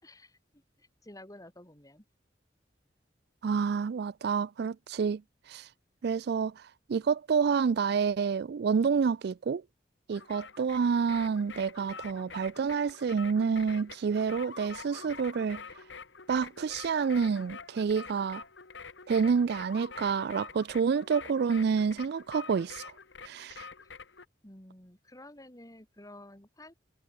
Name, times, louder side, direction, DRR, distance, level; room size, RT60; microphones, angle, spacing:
voice 1, 0.0-2.0 23.8-23.9 24.4-26.7, left 1 dB, 20° left, 4.6 m, -51 dB
voice 2, 3.4-5.2 5.5-5.7 6.0-9.6 10.1-15.6 16.3-18.4 19.1-22.9 23.2-23.7, right 6 dB, 60° right, 0.4 m, -28 dB
sound 1, 10.1-24.2, left 5 dB, 80° left, 1.7 m, -47 dB
head